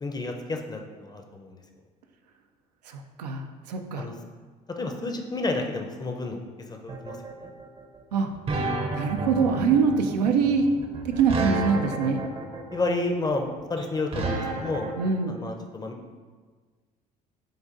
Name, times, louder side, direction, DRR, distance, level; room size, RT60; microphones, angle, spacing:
voice 1, 0.0-1.6 4.0-4.1 4.8-6.4 6.7-7.5 12.7-14.9 15.3-16.0, left 2 dB, 20° left, 3 dB, 0.6 m, -31 dB
voice 2, 2.9-4.0 8.1-8.3 8.9-10.7 11.0-12.2 14.9-15.3, right 5 dB, 85° right, 4 dB, 0.4 m, -24 dB
sound 1, 6.9-15.1, right 3 dB, 30° right, 0.6 m, -31 dB
7.5 x 2.6 x 2.5 m, 1.5 s
hypercardioid pair, 60°, 21 cm